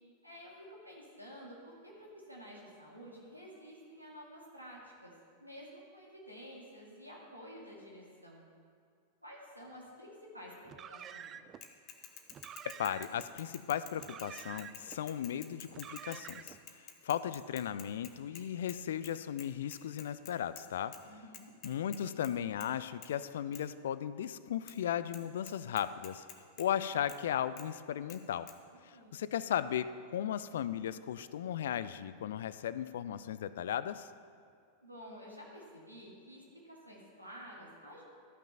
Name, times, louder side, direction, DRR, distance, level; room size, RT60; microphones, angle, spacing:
voice 1, 0.2-5.1 5.4-8.5 9.2-11.4 21.0-21.5 28.9-29.2 34.8-38.0, equal, 90° right, -4 dB, 2.1 m, -51 dB
Car, 10.6-11.6 12.3-13.3 13.9-15.0 15.7-16.6, right 9 dB, 30° right, 0.4 m, -48 dB
Bicycle / Mechanisms, 11.6-18.8 19.0-19.1 19.4-20.6 20.9-21.0 21.3-22.3 22.6-22.8 23.0-23.1 23.5-23.6 24.7-24.8 25.1-25.2 25.5-26.7 27.1-27.2 27.6-27.7 28.1-28.2 28.5-28.6, left 9 dB, 35° left, 0.9 m, -50 dB
voice 2, 12.8-16.6 17.0-21.0 21.6-26.3 26.6-28.5 28.8-34.1, left 10 dB, 60° left, 15 dB, 0.3 m, -36 dB
13.5 x 6.0 x 5.6 m, 2.3 s
figure-of-eight pair, 90°, 0 cm